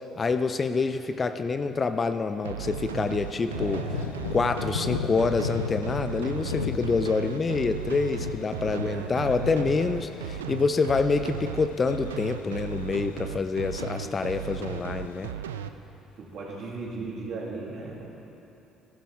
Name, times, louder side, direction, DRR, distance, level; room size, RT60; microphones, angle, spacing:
voice 1, 0.2-3.8 4.3-15.3, left 4 dB, 35° left, 9 dB, 0.6 m, -27 dB
sound 1, 2.5-15.7, right 9 dB, 85° right, 0.3 m, -35 dB
sound 2, 2.6-13.3 13.6-15.3, left 6 dB, 90° left, 0.5 m, -37 dB
voice 2, 3.5-4.1 8.6-9.4 13.5-14.1 16.2-18.0, right 3 dB, 55° right, -4 dB, 3.0 m, -38 dB
15.5 x 12.5 x 3.7 m, 3.0 s
hypercardioid pair, 55°, 0 cm